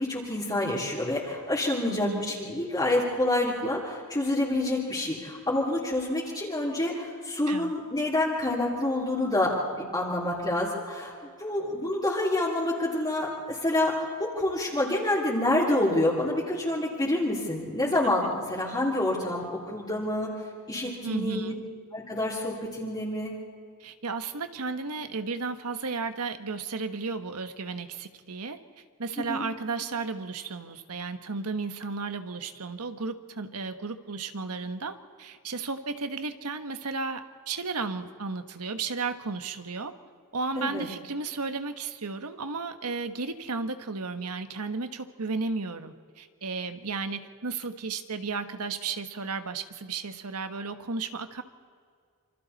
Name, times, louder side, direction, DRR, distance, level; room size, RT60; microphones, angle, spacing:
voice 1, 0.0-11.1 11.4-20.3 20.7-21.5 21.9-23.4 29.2-29.4 40.5-40.9, left 1 dB, 20° left, -7 dB, 3.2 m, -28 dB
voice 2, 1.8-2.3 7.5-7.7 18.2-18.3 21.0-21.6 23.8-28.6 29.0-39.9 40.3-51.4, right 4 dB, 90° right, 9 dB, 1.4 m, -34 dB
27.5 x 25.5 x 4.2 m, 2.1 s
head